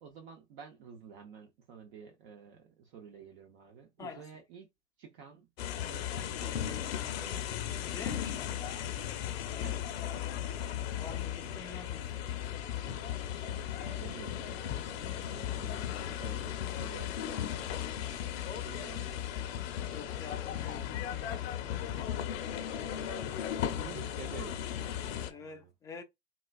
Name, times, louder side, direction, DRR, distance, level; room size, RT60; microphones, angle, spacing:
voice 1, 0.0-4.7 5.0-5.5 5.9-6.7 9.6-9.8 13.8-17.5 18.5-19.3 23.7-25.7, right 7 dB, 50° right, 0.8 m, -50 dB
voice 2, 4.0-4.3 7.8-8.8 10.9-12.4 19.9-21.9 25.3-26.0, left 5 dB, 10° left, 0.5 m, -47 dB
sound 1, 5.6-25.3, left 10 dB, 55° left, 0.7 m, -36 dB
sound 2, 5.9-16.3, right 2 dB, 85° right, 1.4 m, -57 dB
3.9 x 2.3 x 2.3 m
hypercardioid pair, 110°, 36 cm